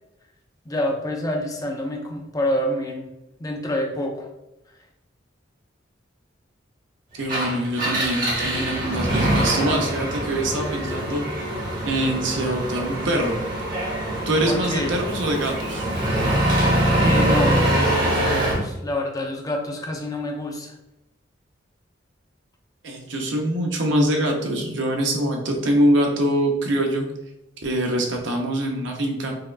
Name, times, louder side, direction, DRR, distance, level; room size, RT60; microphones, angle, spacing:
voice 1, 0.7-3.1 3.4-4.3 14.5-14.9 16.9-20.7, left 1 dB, 20° left, 1 dB, 0.4 m, -27 dB
voice 2, 7.1-11.2 11.8-13.4 14.3-15.9 22.8-27.1 27.6-29.3, right 1 dB, 65° right, 1 dB, 0.6 m, -24 dB
Engine, 7.2-18.7, right 1 dB, 45° right, 1.1 m, -23 dB
4.5 x 2.3 x 2.3 m, 0.90 s
head